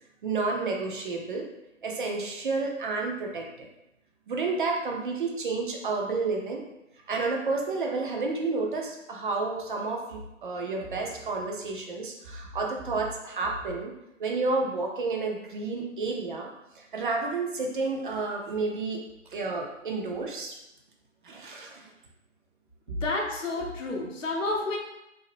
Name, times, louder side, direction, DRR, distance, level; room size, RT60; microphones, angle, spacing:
voice 1, 0.2-1.5 1.8-3.7 4.3-6.6 7.1-13.9 14.2-16.5 16.7-19.0 19.3-20.5 21.2-21.9, right 3 dB, 45° right, 0 dB, 0.5 m, -30 dB
voice 2, 22.9-24.8, left 2 dB, 85° left, 0 dB, 0.6 m, -30 dB
2.6 x 2.0 x 3.1 m, 0.88 s
figure-of-eight pair, 130°, 37 cm